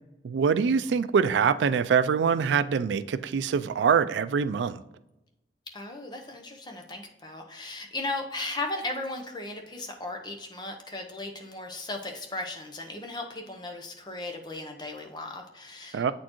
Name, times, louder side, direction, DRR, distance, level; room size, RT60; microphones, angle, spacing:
voice 1, 0.2-4.8 15.9-16.1, right 6 dB, 90° right, 13 dB, 0.3 m, -24 dB
voice 2, 5.7-16.1, left 2 dB, 25° left, 2 dB, 0.8 m, -36 dB
8.1 x 4.4 x 3.0 m, 0.92 s
head